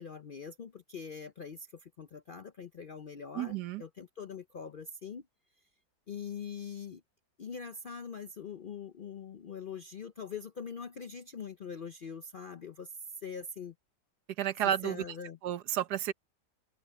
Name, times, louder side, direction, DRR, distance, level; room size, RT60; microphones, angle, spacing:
voice 1, 0.0-5.2 6.1-7.0 7.4-12.9 13.2-13.7 14.8-15.4, left 6 dB, 60° left, 0.5 m, -43 dB
voice 2, 3.3-3.8 14.4-15.0 15.4-16.1, right 11 dB, 85° right, 1.4 m, -31 dB
omnidirectional pair, 1.7 m